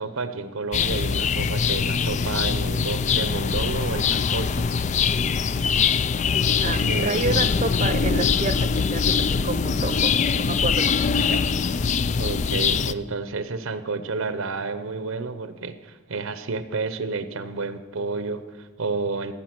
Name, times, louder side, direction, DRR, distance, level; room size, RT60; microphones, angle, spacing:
voice 1, 0.0-4.6 6.9-7.3 12.1-19.3, right 4 dB, 70° right, 12 dB, 0.8 m, -30 dB
sound 1, 0.7-12.9, left 6 dB, 35° left, 0.3 m, -23 dB
voice 2, 6.6-10.8 11.2-11.5, right 3 dB, 35° right, 11 dB, 0.7 m, -29 dB
17.0 x 8.8 x 6.1 m, 1.4 s
head